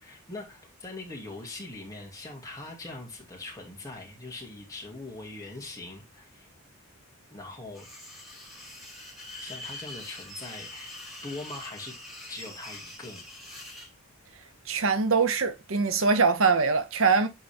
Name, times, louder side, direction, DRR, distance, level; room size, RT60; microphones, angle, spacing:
voice 1, 0.0-6.5 7.3-7.9 9.4-10.9 11.2-11.9 12.3-13.3, left 2 dB, 15° left, 2.3 m, -41 dB
sound 1, 7.7-13.9, left 2 dB, ahead, 2.2 m, -44 dB
voice 2, 14.7-17.3, right 4 dB, 60° right, 0.8 m, -23 dB
9.8 x 4.1 x 3.4 m
head